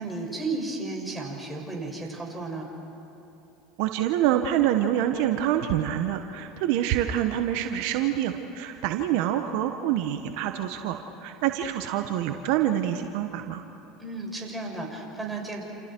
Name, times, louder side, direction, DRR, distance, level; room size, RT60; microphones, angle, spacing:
voice 1, 0.0-2.7 14.0-15.6, right 3 dB, 5° right, -2 dB, 6.3 m, -33 dB
voice 2, 3.8-13.6, right 11 dB, 70° right, 6 dB, 1.2 m, -26 dB
29.5 x 28.5 x 4.6 m, 3.0 s
hypercardioid pair, 90°, 0 cm